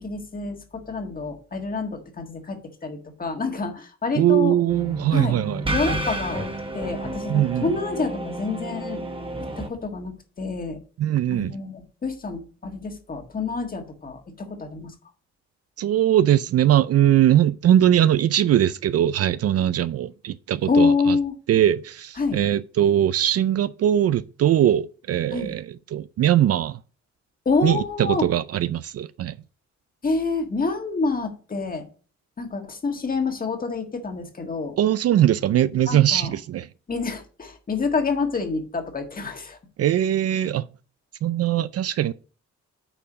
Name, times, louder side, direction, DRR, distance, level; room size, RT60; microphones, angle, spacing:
voice 1, 0.0-4.5 5.1-5.3 5.7-9.0 9.6-10.8 11.3-14.9 20.7-21.3 22.2-22.4 25.3-25.5 27.4-28.2 30.0-31.8 32.4-34.8 35.9-36.3 36.9-39.6, left 4 dB, 30° left, 1.6 m, -27 dB
voice 2, 4.1-5.6 7.3-7.7 11.0-11.6 15.8-21.2 21.5-26.8 27.6-29.4 34.8-36.7 39.8-40.7 41.2-42.1, right 11 dB, 55° right, 0.4 m, -21 dB
sound 1, 4.7-9.7, right 1 dB, 20° right, 1.2 m, -31 dB
8.8 x 4.7 x 5.0 m
wide cardioid pair, 145°, 29 cm